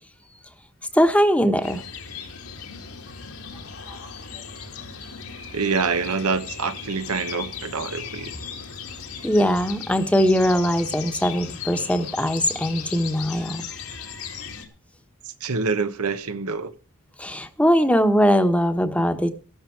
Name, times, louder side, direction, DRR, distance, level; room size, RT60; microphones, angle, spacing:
voice 1, 0.9-1.8 3.9-4.0 9.2-13.6 14.1-14.2 17.2-19.3, equal, 5° left, 1.1 m, -21 dB
sound 1, 1.6-14.7, left 6 dB, 75° left, 2.4 m, -37 dB
voice 2, 5.5-8.4 15.2-16.7, right 4 dB, 85° right, 1.1 m, -26 dB
14.0 x 12.5 x 4.7 m
head